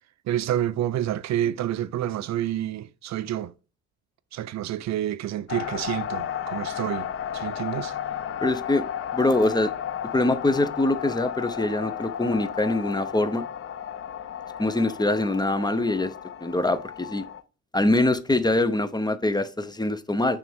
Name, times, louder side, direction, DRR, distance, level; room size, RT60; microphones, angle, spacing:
voice 1, 0.3-3.5 4.3-7.9, right 12 dB, 65° right, 0.5 m, -28 dB
sound 1, 5.5-17.4, left 9 dB, 45° left, 0.6 m, -33 dB
voice 2, 8.4-8.8 9.1-9.7 10.1-13.4 14.6-16.1 16.4-17.2 17.7-20.4, left 2 dB, 15° left, 0.8 m, -24 dB
9.0 x 3.4 x 3.5 m
cardioid pair, 90°, 30 cm